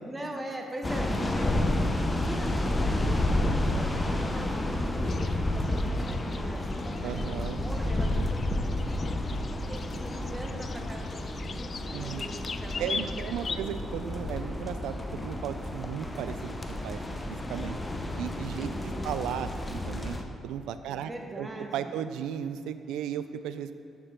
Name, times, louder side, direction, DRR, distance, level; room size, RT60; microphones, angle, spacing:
voice 1, 0.1-9.0 9.6-13.1 13.5-13.6 18.6-19.1 20.9-21.9, right 1 dB, 20° right, 2 dB, 1.1 m, -42 dB
sound 1, 0.8-20.2, left 1 dB, 20° left, 0.7 m, -30 dB
sound 2, 5.0-13.6, left 5 dB, 40° left, 0.3 m, -41 dB
voice 2, 7.0-7.6 8.1-8.2 11.9-12.2 12.8-17.0 17.3-17.8 18.2-20.2 20.4-21.1 21.4-23.8, right 9 dB, 90° right, 11 dB, 0.3 m, -35 dB
sound 3, 13.7-13.9 14.4-14.7 15.2-15.3 15.9-16.2 16.7-17.0 17.4-17.7 18.1-18.4 18.9-19.3 19.6-19.8, left 2 dB, 90° left, 1.3 m, -48 dB
9.0 x 6.7 x 3.7 m, 2.7 s
cardioid pair, 90°, 0 cm